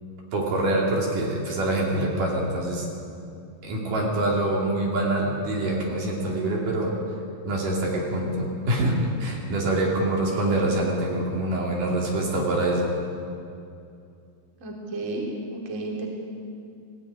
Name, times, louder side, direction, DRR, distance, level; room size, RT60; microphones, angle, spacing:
voice 1, 0.3-2.9 3.6-6.9 7.5-12.9, right 1 dB, 55° right, -2 dB, 4.0 m, -25 dB
voice 2, 10.2-10.6 14.6-16.1, right 2 dB, 20° right, -1 dB, 2.9 m, -33 dB
18.0 x 17.0 x 9.7 m, 2.5 s
omnidirectional pair, 4.7 m